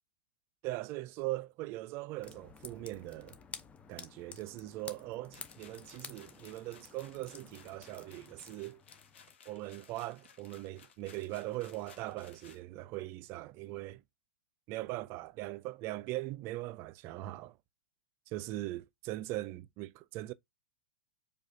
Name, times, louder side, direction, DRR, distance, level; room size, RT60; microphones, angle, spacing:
voice 1, 0.6-3.4 3.9-8.8 9.5-14.0 14.7-17.6 18.3-20.3, right 17 dB, 40° right, 0.4 m, -40 dB
sound 1, 2.2-9.4, left 6 dB, 20° left, 0.6 m, -51 dB
sound 2, 5.3-12.6, left 7 dB, 70° left, 0.9 m, -59 dB
4.8 x 2.4 x 2.6 m
hypercardioid pair, 100°, 7 cm